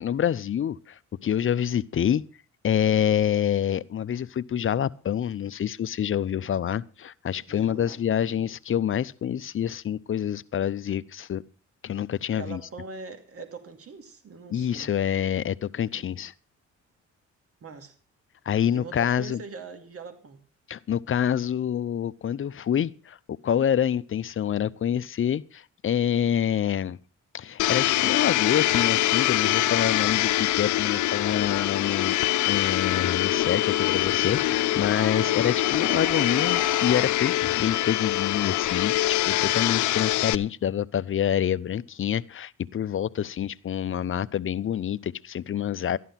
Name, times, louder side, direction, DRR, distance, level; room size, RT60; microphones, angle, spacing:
voice 1, 0.0-2.2 2.6-11.4 11.8-12.6 14.5-16.3 18.5-19.4 20.7-23.2 23.4-27.0 27.3-32.2 32.5-46.0, left 9 dB, 45° left, 0.7 m, -27 dB
voice 2, 7.5-8.4 12.3-14.9 15.9-16.1 17.6-17.9 18.7-20.4 33.2-33.7 35.2-35.4, right 4 dB, 50° right, 2.5 m, -42 dB
Domestic sounds home sounds, 27.6-40.3, left 15 dB, 80° left, 0.7 m, -24 dB
sound 1, 29.2-37.1, equal, 20° right, 2.8 m, -42 dB
13.5 x 11.0 x 5.8 m
cardioid pair, 90°, 30 cm